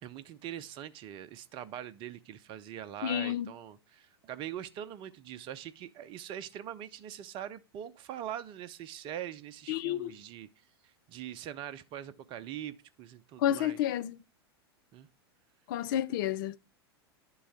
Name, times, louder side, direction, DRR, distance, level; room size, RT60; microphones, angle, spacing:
voice 1, 0.0-13.8 14.9-15.1, right 11 dB, 40° right, 0.6 m, -43 dB
voice 2, 3.0-3.5 9.7-10.1 13.4-14.2 15.7-16.6, left 11 dB, 55° left, 0.5 m, -30 dB
11.0 x 3.8 x 4.3 m
figure-of-eight pair, 90°, 13 cm